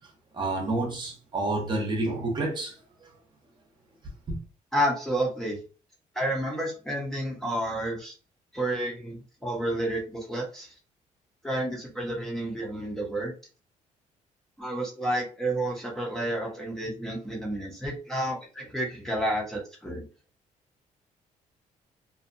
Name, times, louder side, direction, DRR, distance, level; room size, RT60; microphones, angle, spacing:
voice 1, 0.3-2.7 4.3-4.4, right 2 dB, 35° right, 0.8 m, -29 dB
voice 2, 4.7-5.6 6.1-8.1 8.5-10.7 11.4-13.3 14.6-20.1, right 1 dB, 5° left, 0.7 m, -30 dB
2.6 x 2.2 x 2.5 m
cardioid pair, 150°, 14 cm